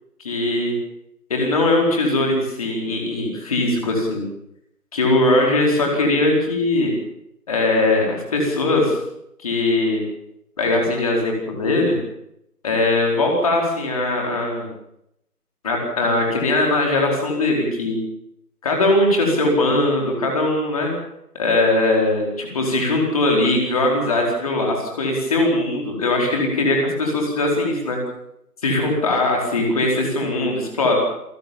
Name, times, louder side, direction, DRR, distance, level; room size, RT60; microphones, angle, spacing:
voice 1, 0.2-0.7 1.3-4.2 4.9-6.9 7.5-9.0 9.4-10.0 10.6-12.0 12.6-14.7 15.6-18.0 18.6-20.9 21.4-28.0 28.6-31.0, left 2 dB, 20° left, 0 dB, 4.5 m, -20 dB
27.5 x 15.5 x 7.1 m, 0.79 s
figure-of-eight pair, 165°, 48 cm